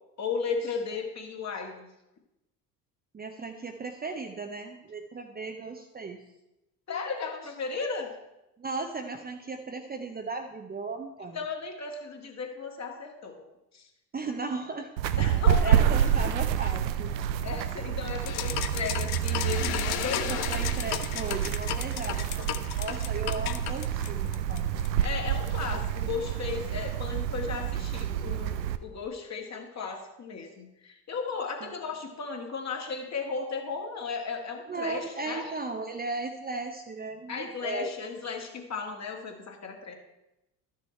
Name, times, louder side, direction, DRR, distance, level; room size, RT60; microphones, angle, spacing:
voice 1, 0.2-1.9 6.9-8.1 11.3-13.4 13.7-13.9 15.2-16.1 17.4-20.5 25.0-35.5 37.3-40.0, left 5 dB, 35° left, 3 dB, 1.9 m, -35 dB
voice 2, 3.1-6.3 8.6-11.4 14.1-15.3 15.6-17.2 20.0-24.8 31.6-31.7 34.7-38.1, right 3 dB, 20° right, 4 dB, 0.7 m, -36 dB
sound 1, 15.0-28.8, right 9 dB, 85° right, 0.6 m, -28 dB
sound 2, 18.3-25.1, left 11 dB, 50° left, 0.8 m, -34 dB
12.5 x 6.5 x 4.3 m, 0.94 s
hypercardioid pair, 65°, 49 cm